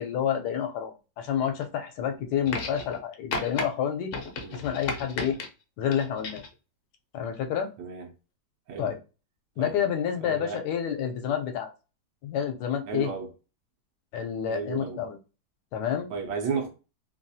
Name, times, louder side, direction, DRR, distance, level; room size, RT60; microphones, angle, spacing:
voice 1, 0.0-4.1 4.5-5.4 5.8-6.4 7.1-7.7 8.8-9.0 9.6-11.7 12.2-13.1 14.1-15.2 15.7-16.1, left 8 dB, 80° left, 1.2 m, -29 dB
sound 1, 2.5-3.0 3.3-3.7 4.1-5.5 5.9-6.5 7.6-7.7, left 3 dB, 60° left, 0.8 m, -34 dB
voice 2, 10.2-10.6 12.9-13.3 14.5-15.0 16.1-16.7, right 5 dB, 85° right, 1.3 m, -33 dB
3.2 x 2.3 x 2.6 m
omnidirectional pair, 1.8 m